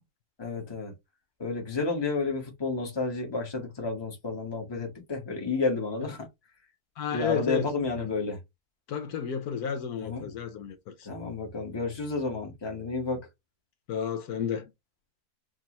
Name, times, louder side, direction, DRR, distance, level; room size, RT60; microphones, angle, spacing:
voice 1, 0.4-0.9 1.4-6.3 7.1-8.4 10.0-10.2 11.0-13.2, left 3 dB, 20° left, 1.1 m, -31 dB
voice 2, 7.0-7.7 8.0-8.1 8.9-11.1 13.9-14.7, left 8 dB, 70° left, 1.2 m, -32 dB
5.0 x 2.4 x 2.9 m
omnidirectional pair, 1.7 m